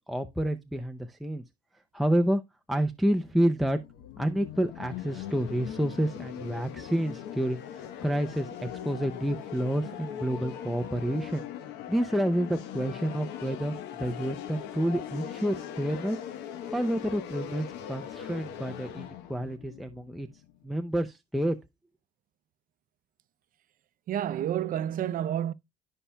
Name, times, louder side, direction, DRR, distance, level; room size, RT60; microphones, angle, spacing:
voice 1, 0.1-1.4 1.9-2.4 2.7-3.8 4.2-11.4 11.9-16.2 16.7-20.3 20.6-21.6, right 1 dB, ahead, 0.5 m, -29 dB
sound 1, 3.1-20.8, left 9 dB, 90° left, 1.0 m, -41 dB
voice 2, 24.1-25.5, right 10 dB, 55° right, 0.5 m, -29 dB
14.5 x 5.6 x 2.2 m
cardioid pair, 110°, 17 cm